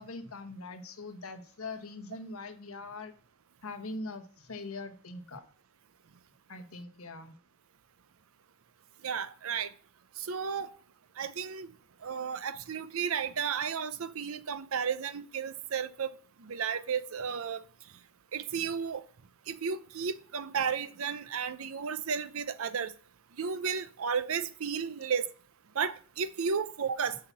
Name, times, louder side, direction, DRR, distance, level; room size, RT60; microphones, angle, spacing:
voice 1, 0.0-3.1 3.6-5.4 6.5-7.4, left 3 dB, 85° left, 1.3 m, -42 dB
voice 2, 9.0-9.7 10.2-10.7 11.2-11.7 12.0-16.1 16.4-17.6 18.3-19.0 19.5-22.9 23.4-25.3 25.8-27.2, right 6 dB, 85° right, 0.6 m, -33 dB
6.5 x 5.7 x 7.0 m
head